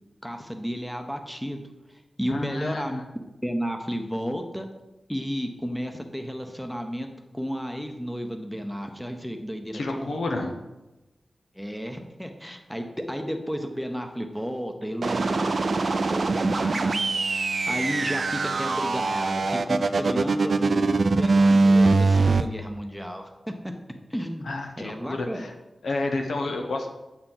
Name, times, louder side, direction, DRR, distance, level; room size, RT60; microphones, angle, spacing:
voice 1, 0.2-1.6 2.2-3.0 3.4-4.7 5.1-7.1 7.3-10.5 11.5-23.7 24.1-24.5 24.8-25.5, equal, 5° left, 4 dB, 0.7 m, -32 dB
voice 2, 2.3-3.0 9.7-10.5 24.4-25.5 25.8-26.9, left 2 dB, 85° left, 3 dB, 0.8 m, -30 dB
sound 1, 15.0-22.4, right 3 dB, 65° right, 0.3 m, -22 dB
7.8 x 4.3 x 3.8 m, 1.0 s
wide cardioid pair, 75°, 0 cm